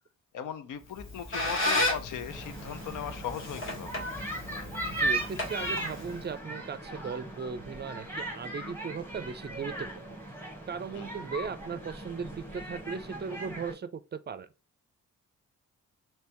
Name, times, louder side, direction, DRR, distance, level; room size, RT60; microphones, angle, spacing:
voice 1, 0.3-4.0 10.9-11.1, left 8 dB, 85° left, 0.6 m, -38 dB
Squeak, 0.8-6.3, left 2 dB, 45° left, 1.6 m, -34 dB
sound 1, 2.3-13.7, right 1 dB, 5° left, 1.3 m, -37 dB
voice 2, 4.9-10.1 10.7-14.5, right 6 dB, 35° right, 0.4 m, -37 dB
3.3 x 2.9 x 2.9 m
cardioid pair, 75°, 30 cm